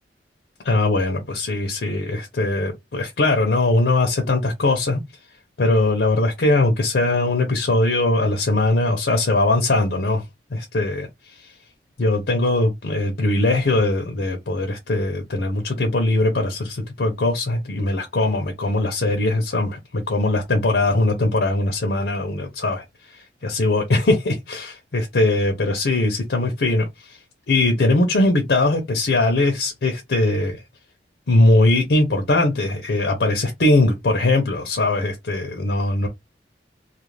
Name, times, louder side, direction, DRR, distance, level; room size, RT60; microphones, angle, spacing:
voice 1, 0.6-5.0 5.6-10.2 10.5-11.1 11.4-11.5 12.0-27.2 27.5-30.6 31.3-36.1, left 2 dB, 75° left, 0.6 m, -20 dB
2.4 x 2.2 x 3.1 m
head